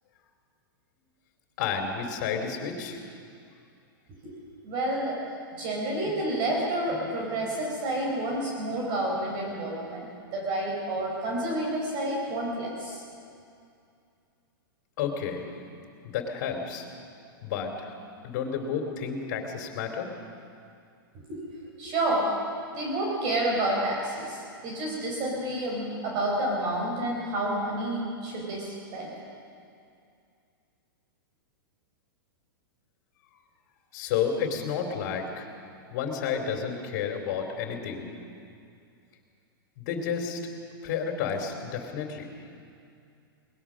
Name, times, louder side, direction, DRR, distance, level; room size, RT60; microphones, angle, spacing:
voice 1, 1.6-3.0 15.0-15.4 16.0-16.8 17.4-17.9 18.2-20.1 33.9-35.5 35.9-38.0 39.8-40.4 40.8-42.3, left 7 dB, 45° left, 2 dB, 3.3 m, -31 dB
voice 2, 4.6-5.2 5.5-10.1 10.3-13.0 21.3-21.4 21.8-22.3 22.7-29.1, right 1 dB, 35° right, -2 dB, 4.6 m, -29 dB
22.5 x 20.0 x 6.3 m, 2.4 s
hypercardioid pair, 150°, 12 cm